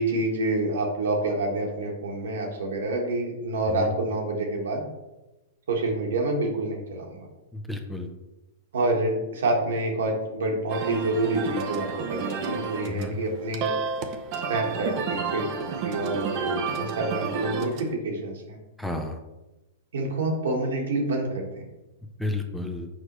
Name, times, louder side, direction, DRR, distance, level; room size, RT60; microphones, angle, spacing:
voice 1, 0.0-4.9 5.7-7.3 8.7-13.7 14.5-15.5 15.8-18.6 19.9-21.6, right 2 dB, 80° right, 1 dB, 1.5 m, -27 dB
voice 2, 7.5-8.1 12.8-13.2 18.8-19.2 22.2-22.9, left 2 dB, 5° left, 4 dB, 0.6 m, -31 dB
sound 1, 10.7-17.9, right 5 dB, 45° right, 0.6 m, -31 dB
6.4 x 4.8 x 3.1 m, 1.0 s
hypercardioid pair, 125°, 0 cm